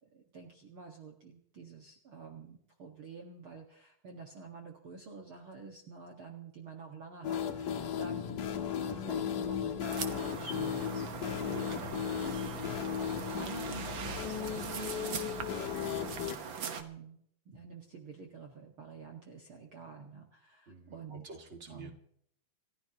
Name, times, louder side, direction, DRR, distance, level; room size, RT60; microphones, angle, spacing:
voice 1, 0.1-8.5 8.8-12.3 13.1-21.3 21.7-21.9, right 4 dB, 45° right, 1 dB, 2.2 m, -49 dB
sound 1, 7.2-16.4, left 8 dB, 70° left, 2.9 m, -36 dB
sound 2, 9.8-16.8, right 6 dB, 60° right, 1.3 m, -41 dB
voice 2, 11.5-12.3 20.7-21.9, right 3 dB, 25° right, 3 dB, 1.9 m, -48 dB
29.0 x 14.5 x 3.0 m, 0.67 s
omnidirectional pair, 3.9 m